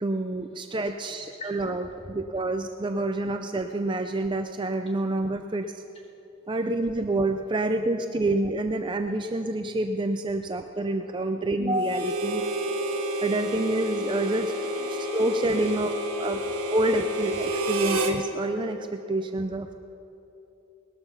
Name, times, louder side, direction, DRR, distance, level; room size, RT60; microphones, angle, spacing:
voice 1, 0.0-5.8 6.5-12.4 13.2-15.9 16.2-16.4 16.7-19.7, right 2 dB, 20° right, 6 dB, 0.4 m, -28 dB
voice 2, 0.8-2.1 2.4-2.5 6.5-6.8 7.5-7.8 8.0-8.2 10.3-10.4 11.3-11.4 12.3-12.7 14.8-15.0 15.3-15.8 16.3-16.9 17.3-17.4 17.7-17.8, equal, 25° left, -1 dB, 2.5 m, -48 dB
Harmonica, 11.8-18.2, right 1 dB, 75° right, 1.5 m, -29 dB
20.0 x 13.0 x 5.6 m, 3.0 s
head